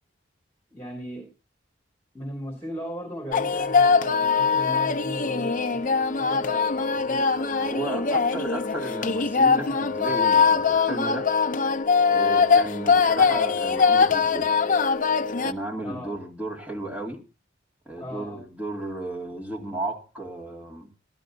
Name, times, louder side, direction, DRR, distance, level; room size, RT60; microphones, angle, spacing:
voice 1, 0.7-1.3 2.1-7.6 15.8-16.1 18.0-18.4, equal, 10° left, 3.4 m, -37 dB
sound 1, 3.3-15.5, left 5 dB, 45° left, 0.7 m, -22 dB
voice 2, 7.6-11.3 12.1-14.5 15.3-17.2 17.9-20.9, right 2 dB, 5° right, 2.6 m, -34 dB
14.5 x 12.5 x 3.9 m
head